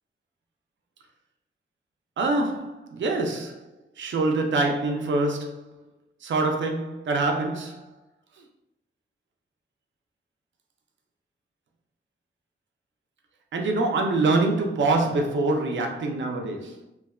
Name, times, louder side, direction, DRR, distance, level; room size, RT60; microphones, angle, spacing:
voice 1, 2.2-3.7 4.0-5.7 6.2-7.9 13.5-16.8, right 2 dB, 80° right, 0.5 m, -25 dB
3.2 x 2.1 x 2.3 m
wide cardioid pair, 155°, 19 cm